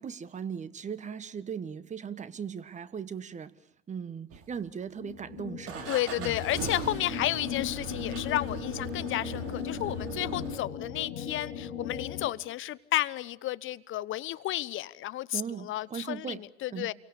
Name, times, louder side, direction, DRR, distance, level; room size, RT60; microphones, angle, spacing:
voice 1, 0.0-3.6 3.9-5.9 6.2-6.4 15.3-16.4 16.7-16.9, right 7 dB, 20° right, 1.5 m, -38 dB
sound 1, 4.3-5.0 5.7-10.6, right 7 dB, 45° right, 5.6 m, -40 dB
sound 2, 4.9-12.3, left 9 dB, 55° left, 5.6 m, -38 dB
voice 2, 5.9-16.9, left 14 dB, 40° left, 1.0 m, -32 dB
29.5 x 24.0 x 6.9 m
hypercardioid pair, 95°, 33 cm